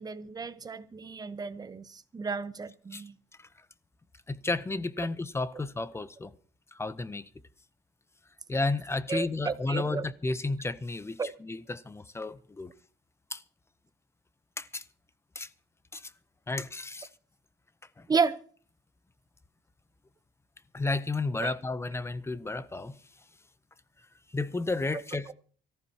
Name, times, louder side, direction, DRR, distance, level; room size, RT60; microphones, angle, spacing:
voice 1, 0.0-3.1 9.1-10.1 11.2-11.3 18.1-18.4 21.4-21.5, right 5 dB, 25° right, 1.0 m, -32 dB
voice 2, 4.3-6.3 6.7-7.3 8.5-12.7 13.3-13.4 14.6-14.8 15.4-15.5 15.9-16.1 16.5-17.1 18.0-18.1 20.7-23.0 24.3-25.3, left 3 dB, 15° left, 0.7 m, -32 dB
24.5 x 14.5 x 2.9 m
cardioid pair, 110°, 17 cm